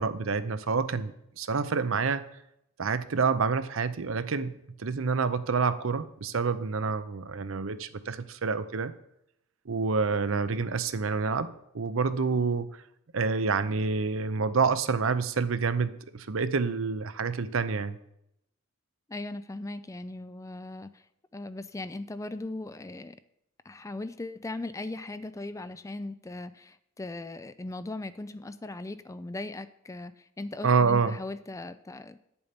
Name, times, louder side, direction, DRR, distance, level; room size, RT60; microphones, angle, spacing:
voice 1, 0.0-2.3 2.8-8.9 9.7-12.7 13.1-18.0 30.6-31.2, right 5 dB, 65° right, 13 dB, 0.6 m, -28 dB
voice 2, 19.1-21.0 21.3-23.2 23.7-32.2, left 2 dB, 15° left, 13 dB, 0.3 m, -38 dB
9.4 x 7.1 x 5.2 m, 0.78 s
head